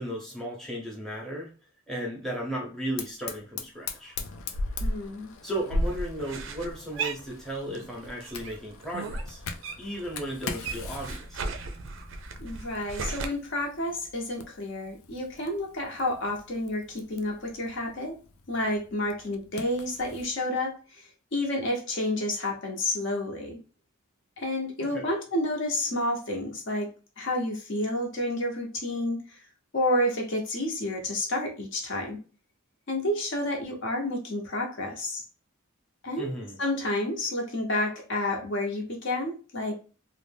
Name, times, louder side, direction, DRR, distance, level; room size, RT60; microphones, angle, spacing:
voice 1, 0.0-1.5 1.9-4.2 5.4-9.4 9.8-11.4 24.9-25.2 36.2-36.6, right 1 dB, ahead, -2 dB, 0.6 m, -35 dB
Fire, 3.0-20.3, left 2 dB, 85° left, 0.4 m, -39 dB
voice 2, 4.8-5.3 12.4-18.1 18.5-23.6 24.4-26.9 27.2-29.4 29.7-32.2 32.9-35.2 36.0-36.3 36.6-39.7, left 1 dB, 60° left, 1 dB, 0.7 m, -30 dB
sound 1, 5.8-7.9 8.2-10.0 10.3-13.3, right 4 dB, 70° right, 0.4 m, -36 dB
2.5 x 2.1 x 3.3 m, 0.35 s
head